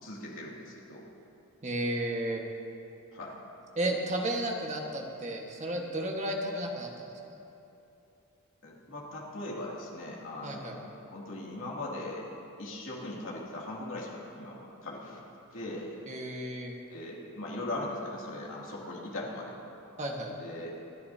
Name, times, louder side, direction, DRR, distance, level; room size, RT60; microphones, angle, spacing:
voice 1, 0.0-1.1 3.1-3.4 8.6-12.3 12.6-15.2 15.5-16.0 16.9-19.7 20.4-20.8, left 1 dB, 65° left, -4 dB, 2.6 m, -39 dB
voice 2, 1.6-2.4 3.7-7.1 10.4-10.7 16.1-16.7 20.0-20.3, right 1 dB, 35° right, 0 dB, 1.5 m, -33 dB
26.5 x 11.0 x 2.8 m, 2.9 s
head